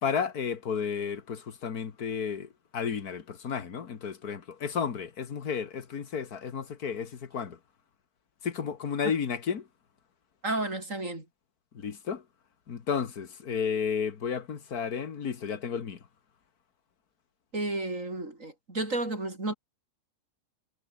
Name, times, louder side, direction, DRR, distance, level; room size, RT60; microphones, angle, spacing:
voice 1, 0.0-7.6 8.4-9.7 11.7-12.2 12.7-16.0, left 6 dB, 85° left, 2.1 m, -32 dB
voice 2, 10.4-11.3 17.5-19.5, right 2 dB, 55° right, 5.9 m, -32 dB
omnidirectional pair, 1.6 m